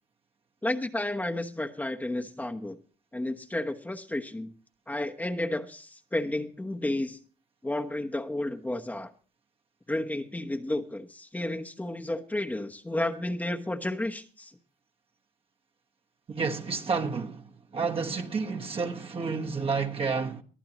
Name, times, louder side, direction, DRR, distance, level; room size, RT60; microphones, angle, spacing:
voice 1, 0.6-2.8 3.1-4.5 4.9-7.2 7.6-9.1 9.9-14.6, left 1 dB, 10° left, 1.1 m, -32 dB
voice 2, 16.3-17.4 17.7-20.4, right 4 dB, 35° right, 1.4 m, -30 dB
22.5 x 14.0 x 3.0 m
cardioid pair, 110°, 17 cm